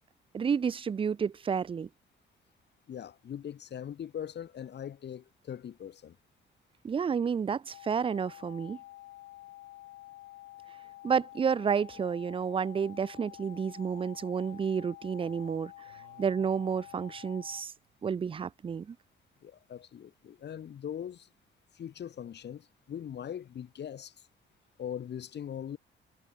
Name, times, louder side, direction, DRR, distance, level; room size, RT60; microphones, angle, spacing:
voice 1, 0.3-1.9 6.8-8.8 11.0-15.7 16.2-17.7 18.0-19.0, right 6 dB, 25° right, 0.4 m, -30 dB
voice 2, 2.9-6.2 19.4-21.3 21.7-24.3 24.8-25.8, left 9 dB, 60° left, 3.1 m, -41 dB
sound 1, 7.7-17.6, left 16 dB, 85° left, 0.9 m, -49 dB
sound 2, 15.8-18.4, right 15 dB, 90° right, 6.1 m, -64 dB
cardioid pair, 90°, 20 cm